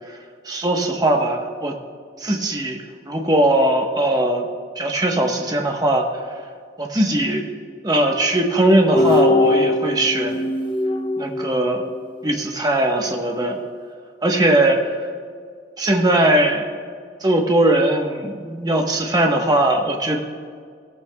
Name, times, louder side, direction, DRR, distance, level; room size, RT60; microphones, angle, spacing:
voice 1, 0.4-1.7 2.2-2.8 3.1-4.5 4.8-6.1 6.8-7.4 7.8-10.4 11.2-11.8 12.2-13.6 14.2-15.0 15.8-16.6 17.2-20.2, right 1 dB, 20° right, 2 dB, 1.2 m, -19 dB
sound 1, 9.0-12.2, left 2 dB, 25° left, 0.5 m, -21 dB
17.0 x 14.5 x 2.3 m, 2.1 s
head